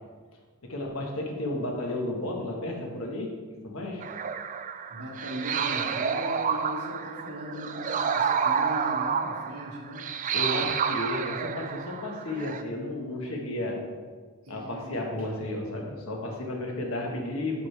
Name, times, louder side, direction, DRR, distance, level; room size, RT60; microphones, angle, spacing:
voice 1, 0.6-3.4 3.6-4.0 10.3-13.8 14.5-17.7, left 1 dB, 65° left, 0 dB, 1.4 m, -33 dB
sound 1, 4.0-12.6, right 6 dB, 35° right, 0.3 m, -29 dB
voice 2, 4.9-10.1 14.5-14.9, equal, 85° right, -2 dB, 1.7 m, -38 dB
11.5 x 4.7 x 3.4 m, 1.5 s
head